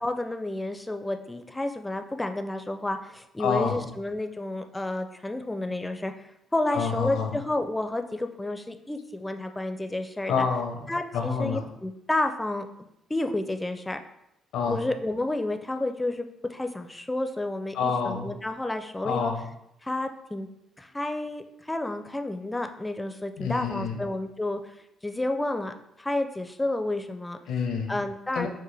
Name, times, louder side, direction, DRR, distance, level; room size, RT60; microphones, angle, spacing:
voice 1, 0.0-10.5 10.9-12.7 13.1-14.0 14.7-19.3 19.8-20.5 20.8-24.6 25.0-27.4 27.9-28.5, left 2 dB, 10° left, 7 dB, 0.4 m, -30 dB
voice 2, 3.4-3.9 6.7-7.3 10.3-11.7 14.5-14.9 17.7-18.3 19.0-19.5 23.4-24.0 27.5-28.0 28.3-28.5, left 5 dB, 90° left, 4 dB, 0.7 m, -28 dB
6.0 x 2.5 x 3.3 m, 0.80 s
cardioid pair, 100°, 0 cm